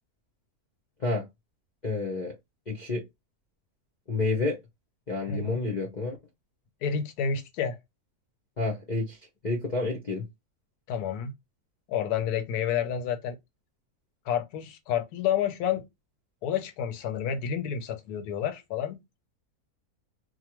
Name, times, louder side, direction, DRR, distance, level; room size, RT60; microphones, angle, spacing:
voice 1, 1.8-2.3 2.7-3.0 4.1-4.6 5.1-6.2 8.6-9.2 9.4-10.2, left 3 dB, 45° left, 0.6 m, -29 dB
voice 2, 5.2-5.6 6.8-7.8 10.9-11.3 11.9-13.4 14.3-15.8 16.4-19.0, left 8 dB, 85° left, 1.1 m, -29 dB
2.9 x 2.1 x 2.9 m
omnidirectional pair, 1.6 m